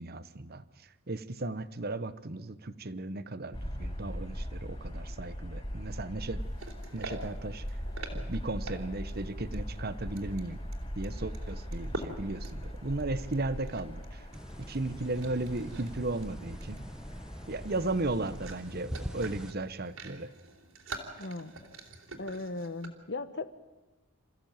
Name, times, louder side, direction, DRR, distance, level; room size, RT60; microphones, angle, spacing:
voice 1, 0.0-6.4 6.9-7.8 8.1-10.6 11.0-14.3 14.7-16.8 17.5-20.3, right 2 dB, 45° right, 14 dB, 1.0 m, -36 dB
sound 1, 3.5-18.6, equal, 25° left, 5.1 m, -40 dB
sound 2, 6.4-9.2 9.5-9.6 10.2-14.1 14.3-14.8 15.0-15.9 16.2-22.9, right 2 dB, 70° right, 3.6 m, -46 dB
sound 3, 14.3-19.5, equal, 5° right, 1.1 m, -44 dB
voice 2, 21.2-21.5 22.2-23.5, left 2 dB, 50° left, 13 dB, 1.3 m, -37 dB
28.0 x 15.0 x 9.0 m, 1.1 s
head